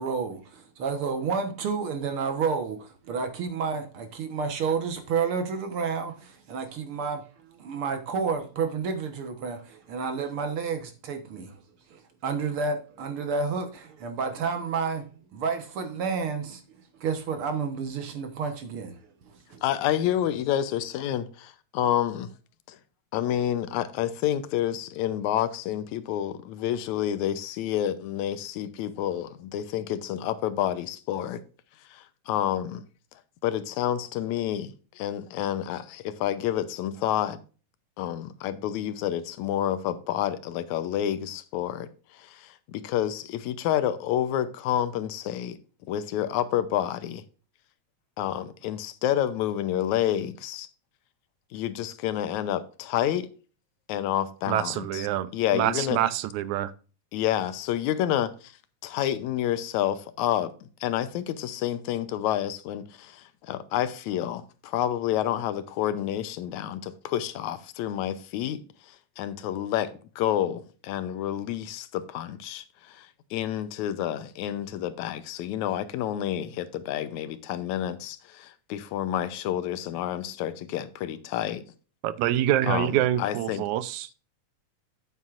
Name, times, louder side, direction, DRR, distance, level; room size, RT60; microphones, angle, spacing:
voice 1, 0.0-11.6 11.9-19.6, right 5 dB, 55° right, 1.8 m, -30 dB
voice 2, 19.6-22.3 22.7-22.8 23.1-31.4 31.9-32.8 33.4-37.4 38.0-45.6 45.9-47.2 48.2-50.7 51.5-53.3 53.9-55.1 55.3-56.0 57.1-58.5 58.8-81.6 82.7-83.6, left 11 dB, 80° left, 2.1 m, -29 dB
voice 3, 54.5-56.7 82.0-84.2, right 12 dB, 85° right, 2.1 m, -26 dB
9.2 x 8.4 x 2.5 m
omnidirectional pair, 3.3 m